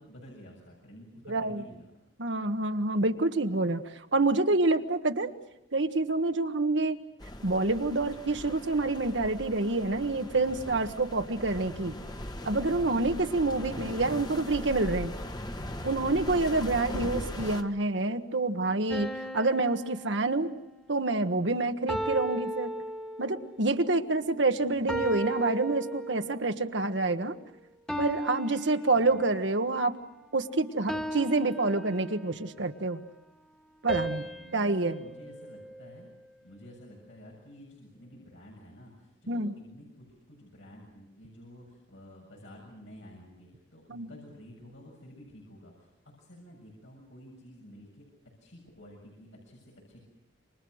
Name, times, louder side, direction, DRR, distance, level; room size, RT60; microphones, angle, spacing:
voice 1, 0.0-1.9 24.6-24.8 28.9-29.2 34.2-36.1 36.4-48.1 48.4-50.0, equal, 80° left, -2 dB, 7.2 m, -51 dB
voice 2, 1.3-1.6 2.2-5.3 5.7-7.0 7.4-11.9 12.4-15.1 15.8-19.1 19.3-20.5 20.9-22.7 23.2-27.3 28.0-30.0 30.3-33.0 33.8-34.2 34.5-35.0 39.3-39.5 43.9-44.1, right 2 dB, 75° right, 7 dB, 1.4 m, -27 dB
sound 1, 7.2-17.6, left 1 dB, 20° left, 1.5 m, -39 dB
sound 2, 18.9-20.8 21.9-23.5 24.9-26.5 27.9-29.6 30.9-32.5 33.9-36.2, right 1 dB, 5° left, 1.8 m, -36 dB
28.0 x 25.5 x 6.5 m, 0.88 s
head